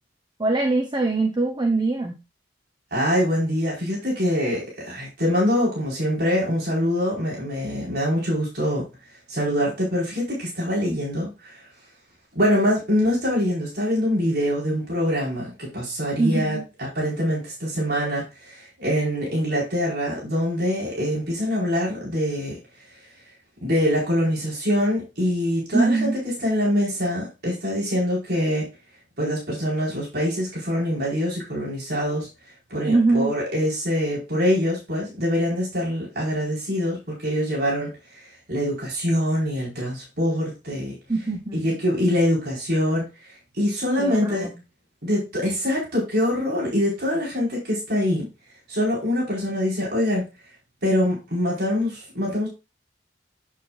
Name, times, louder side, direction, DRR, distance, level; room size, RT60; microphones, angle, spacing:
voice 1, 0.4-2.2 16.2-16.6 25.7-26.2 32.8-33.3 41.1-41.6 44.0-44.5, right 3 dB, 25° right, 3 dB, 0.9 m, -22 dB
voice 2, 2.9-8.9 9.3-11.7 12.3-22.6 23.6-28.7 29.2-32.3 32.7-38.2 38.5-40.9 41.5-44.5 45.0-48.3 48.7-50.2 50.8-52.5, equal, 55° right, -4 dB, 4.5 m, -24 dB
8.4 x 8.3 x 2.5 m, 0.27 s
head